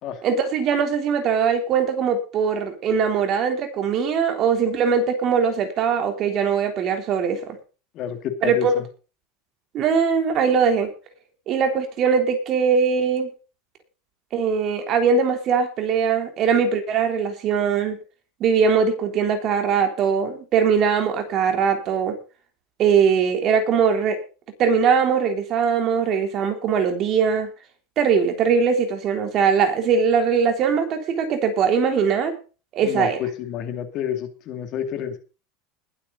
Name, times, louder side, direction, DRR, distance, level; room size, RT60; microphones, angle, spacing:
voice 1, 0.2-7.4 8.4-8.7 9.7-10.9 11.5-13.3 14.3-18.0 18.4-22.2 22.8-24.2 24.6-27.5 28.0-32.3 32.7-33.2, right 6 dB, 30° right, 5 dB, 3.4 m, -21 dB
voice 2, 7.9-8.8 32.8-35.2, left 9 dB, 35° left, 7 dB, 2.5 m, -29 dB
20.5 x 8.6 x 4.0 m, 0.34 s
supercardioid pair, 165°, 0 cm